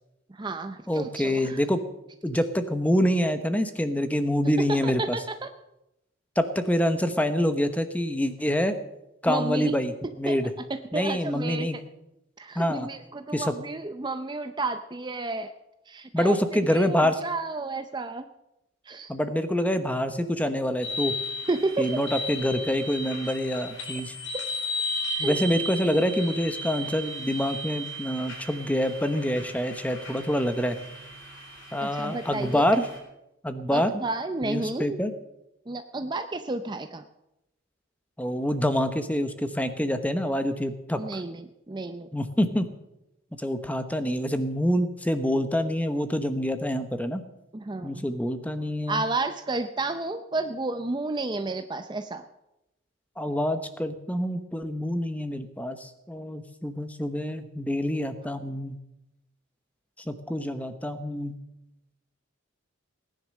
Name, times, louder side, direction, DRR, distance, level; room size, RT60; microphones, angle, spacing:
voice 1, 0.3-1.6 4.6-5.5 9.2-9.7 10.3-10.4 10.7-11.8 12.4-15.5 15.9-16.4 16.7-18.3 18.9-19.1 21.5-22.0 24.3-24.4 25.1-25.4 31.8-32.7 33.7-35.0 35.7-37.0 41.0-42.1 47.5-48.1 48.9-52.3, right 2 dB, 20° right, 8 dB, 0.5 m, -31 dB
voice 2, 0.9-1.8 2.2-5.2 6.4-8.8 9.2-10.5 10.9-11.8 12.5-12.9 13.3-13.5 16.1-17.2 19.1-21.1 21.8-24.1 25.2-30.8 31.7-32.9 33.4-33.9 34.4-35.1 38.2-41.0 42.1-42.7 43.4-47.2 47.8-49.0 53.2-58.8 60.0-61.4, equal, 5° left, 9 dB, 1.0 m, -26 dB
sound 1, 20.8-33.0, left 1 dB, 65° left, 4.7 m, -35 dB
19.0 x 10.5 x 6.5 m, 0.90 s
head